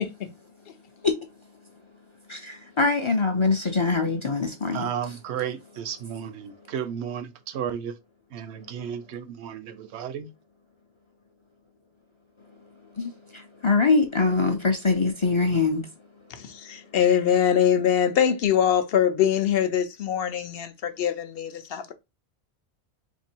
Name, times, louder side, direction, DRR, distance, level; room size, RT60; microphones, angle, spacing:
voice 1, 1.0-1.8 2.3-5.2 6.4-6.7 8.6-9.1 12.5-16.4 16.8-17.0, left 4 dB, 40° left, 0.4 m, -25 dB
voice 2, 4.7-7.9 8.3-10.3, right 8 dB, 80° right, 0.9 m, -33 dB
voice 3, 16.3-21.9, left 9 dB, 65° left, 0.8 m, -23 dB
3.2 x 2.7 x 4.4 m
omnidirectional pair, 1.1 m